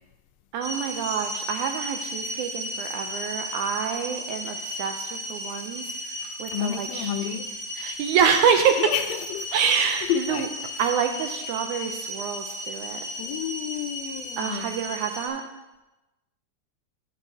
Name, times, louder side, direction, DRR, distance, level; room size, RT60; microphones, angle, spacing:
voice 1, 0.5-7.1 7.8-8.8 9.5-10.5 10.8-13.0 14.4-15.4, right 7 dB, 80° right, 5 dB, 2.0 m, -26 dB
sound 1, 0.6-15.3, equal, 10° right, 1.0 m, -35 dB
voice 2, 6.5-7.5 8.8-9.0 9.3-9.5 10.1-10.5 13.2-14.8, left 11 dB, 85° left, 7 dB, 1.4 m, -30 dB
12.0 x 8.0 x 2.7 m, 1.0 s
omnidirectional pair, 3.6 m